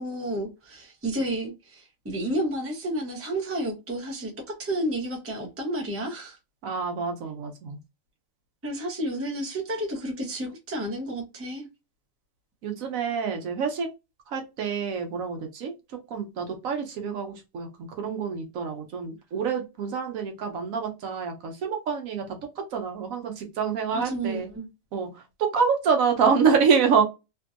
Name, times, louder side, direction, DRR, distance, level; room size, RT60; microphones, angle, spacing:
voice 1, 0.0-6.4 8.6-11.7 23.9-24.7, right 1 dB, 15° right, 0.5 m, -31 dB
voice 2, 6.6-7.8 12.6-13.9 14.3-22.4 22.7-24.5 24.9-27.0, right 6 dB, 80° right, 1.2 m, -26 dB
2.9 x 2.6 x 2.4 m
omnidirectional pair, 1.4 m